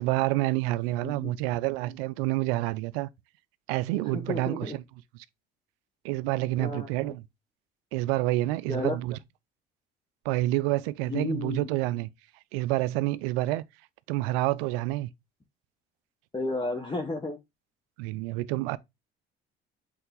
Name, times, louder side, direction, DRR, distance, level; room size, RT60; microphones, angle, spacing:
voice 1, 0.0-3.1 3.7-4.8 6.0-7.2 7.9-9.2 10.2-12.1 12.5-13.6 14.1-15.1 18.0-18.8, right 17 dB, 75° right, 0.5 m, -28 dB
voice 2, 1.0-1.3 4.1-4.8 6.6-7.1 8.7-9.0 11.1-11.7 16.3-17.4, left 2 dB, 15° left, 1.2 m, -32 dB
7.8 x 3.3 x 3.8 m
hypercardioid pair, 55°, 30 cm